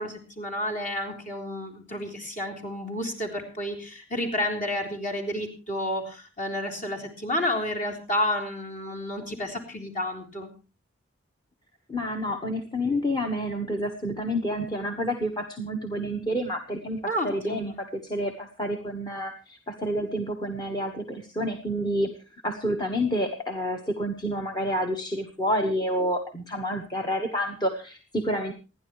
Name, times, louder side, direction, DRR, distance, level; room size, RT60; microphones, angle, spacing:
voice 1, 0.0-10.5 17.1-17.7, left 1 dB, 40° left, 3 dB, 3.8 m, -31 dB
voice 2, 11.9-22.2 22.4-28.5, equal, 20° left, 5 dB, 1.3 m, -29 dB
28.0 x 10.5 x 3.2 m, 0.33 s
head